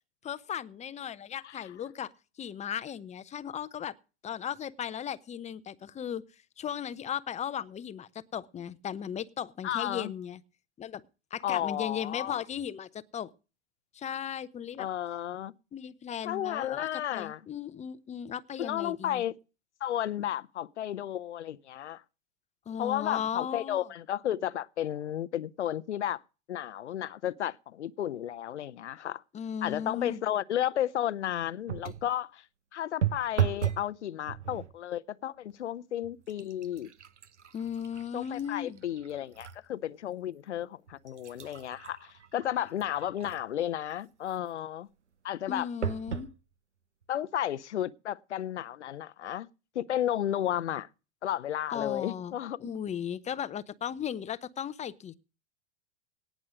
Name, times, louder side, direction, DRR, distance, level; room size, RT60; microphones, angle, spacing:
voice 1, 0.2-2.1 2.4-3.9 4.2-6.2 6.6-10.4 10.8-11.0 11.3-13.3 13.9-14.9 15.7-19.2 22.7-23.9 29.3-30.2 37.5-38.8 45.5-46.3 51.7-55.1, left 9 dB, 20° left, 0.7 m, -36 dB
voice 2, 9.6-10.1 11.4-12.4 14.8-15.5 16.2-17.4 18.6-19.3 19.8-22.0 22.8-26.2 26.5-29.2 29.6-32.4 32.7-36.9 38.1-44.9 45.2-45.7 47.1-49.5 49.7-50.9 51.2-52.7, left 11 dB, 80° left, 0.7 m, -33 dB
sound 1, 31.7-32.1 33.0-33.9 34.3-34.8 35.5-35.6 36.0-39.6 40.1-40.2 40.9-43.6 45.8-46.3 47.0-47.1 47.4-47.5, right 9 dB, 90° right, 0.7 m, -35 dB
18.0 x 6.3 x 5.1 m
figure-of-eight pair, 90°, 34 cm